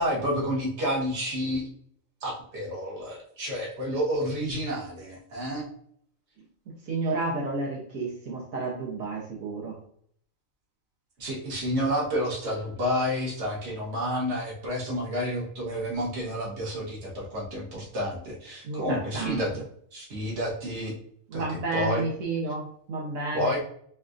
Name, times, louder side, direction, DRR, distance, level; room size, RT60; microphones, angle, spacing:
voice 1, 0.0-1.6 2.2-5.7 11.2-19.6 19.9-20.9 21.3-22.0 23.3-23.6, equal, 55° right, -4 dB, 1.5 m, -30 dB
voice 2, 6.9-9.8 18.6-19.4 21.3-23.5, right 3 dB, 80° right, -3 dB, 1.3 m, -31 dB
5.2 x 2.5 x 2.4 m, 0.63 s
omnidirectional pair, 1.4 m